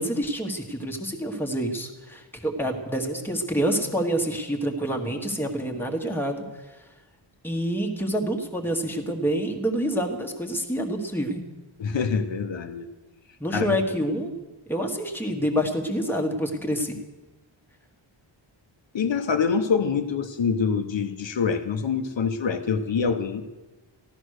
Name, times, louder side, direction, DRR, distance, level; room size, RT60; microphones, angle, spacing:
voice 1, 0.0-6.4 7.4-11.5 13.4-14.3 14.7-17.0, equal, 5° left, 2 dB, 1.4 m, -27 dB
voice 2, 11.8-12.9 13.5-13.8 18.9-23.5, left 6 dB, 65° left, 6 dB, 1.0 m, -25 dB
15.0 x 12.5 x 6.5 m, 1.2 s
wide cardioid pair, 175°, 49 cm